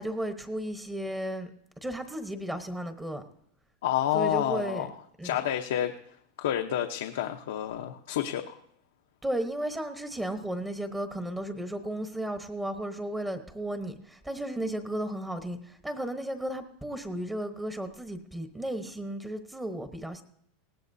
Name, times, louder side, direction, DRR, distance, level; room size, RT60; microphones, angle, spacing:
voice 1, 0.0-1.5 1.8-3.2 4.1-4.9 5.2-5.4 9.2-20.2, right 1 dB, 10° right, 7 dB, 1.0 m, -34 dB
voice 2, 3.8-4.9 5.2-8.6, left 11 dB, 85° left, 4 dB, 0.8 m, -29 dB
19.5 x 17.0 x 2.7 m, 0.69 s
supercardioid pair, 135°, 0 cm